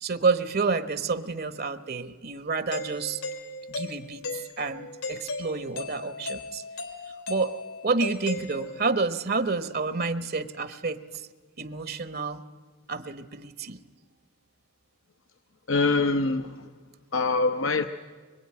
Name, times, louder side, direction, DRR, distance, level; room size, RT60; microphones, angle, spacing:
voice 1, 0.0-3.2 3.7-6.6 7.3-7.5 7.8-11.0 11.6-12.4 12.9-13.8, right 4 dB, 45° right, 12 dB, 1.1 m, -29 dB
Doorbell, 2.7-9.0, left 3 dB, 85° left, 3.5 m, -37 dB
voice 2, 15.7-16.6 17.1-17.9, left 3 dB, 65° left, 8 dB, 0.9 m, -24 dB
25.0 x 23.5 x 9.8 m, 1.5 s
head